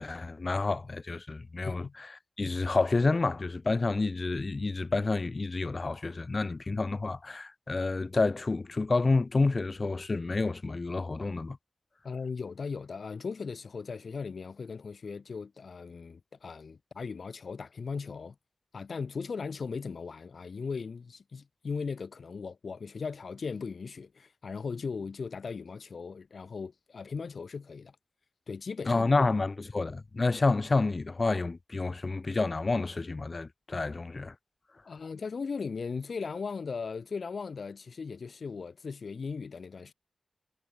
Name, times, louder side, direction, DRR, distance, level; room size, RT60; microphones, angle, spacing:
voice 1, 0.0-11.6 28.9-34.3, left 3 dB, 40° left, 0.3 m, -29 dB
voice 2, 12.0-18.3 18.7-27.9 28.5-29.1 34.8-39.9, left 5 dB, 70° left, 0.8 m, -38 dB
wide cardioid pair, 80°, 0 cm